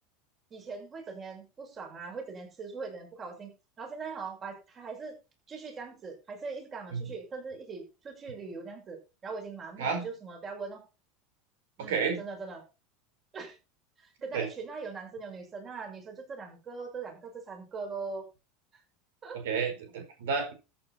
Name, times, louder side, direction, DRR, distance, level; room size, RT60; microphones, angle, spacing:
voice 1, 0.5-3.5 3.8-5.1 5.5-10.8 11.8-12.6 13.3-13.6 14.0-18.3 19.2-19.4, right 4 dB, 30° right, 3 dB, 6.5 m, -41 dB
voice 2, 11.9-12.2 14.3-14.5 19.4-20.5, right 5 dB, 85° right, 5 dB, 4.8 m, -30 dB
14.0 x 9.0 x 4.4 m, 0.30 s
supercardioid pair, 125°, 0 cm